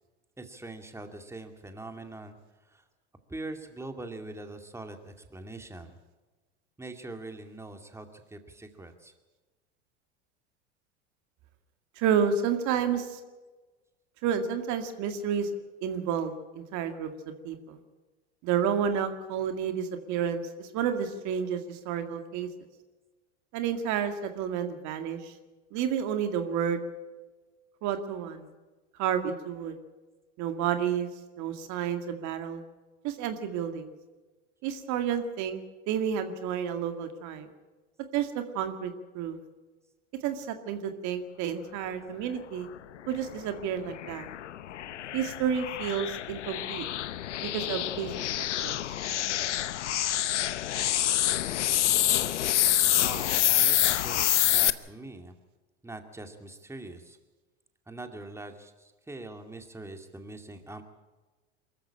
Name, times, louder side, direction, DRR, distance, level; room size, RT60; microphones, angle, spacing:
voice 1, 0.4-2.4 2.7-2.8 3.3-6.0 6.8-9.1 52.6-55.3 55.8-57.2 57.9-60.8, right 2 dB, 10° right, 6 dB, 2.3 m, -43 dB
voice 2, 12.0-13.2 14.2-15.5 15.8-17.8 18.4-22.5 23.5-25.3 25.7-26.8 27.8-28.5 29.0-29.8 30.4-31.1 31.4-32.6 33.0-33.9 34.6-37.5 38.1-39.4 40.2-42.7 43.1-44.3 45.1-46.9 47.5-48.1 48.4-48.8, right 8 dB, 55° right, 7 dB, 2.1 m, -30 dB
sound 1, 43.2-54.7, left 12 dB, 85° left, 0.9 m, -27 dB
23.0 x 14.0 x 8.7 m, 1.2 s
hypercardioid pair, 85°, 34 cm